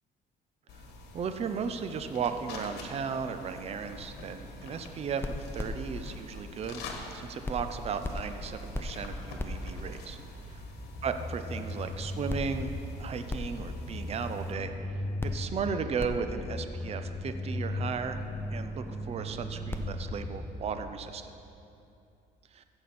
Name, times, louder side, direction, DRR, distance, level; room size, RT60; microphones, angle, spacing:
sound 1, 0.7-14.5, left 1 dB, 80° left, 1.5 m, -46 dB
voice 1, 1.1-6.8 7.1-10.2 10.5-10.6 11.0-18.2 18.5-21.3 22.5-22.6, right 6 dB, 40° right, 8 dB, 0.6 m, -35 dB
sound 2, 5.1-7.1 7.5-20.9, left 1 dB, 15° left, 0.7 m, -37 dB
15.0 x 6.9 x 4.3 m, 2.7 s
cardioid pair, 110°, 17 cm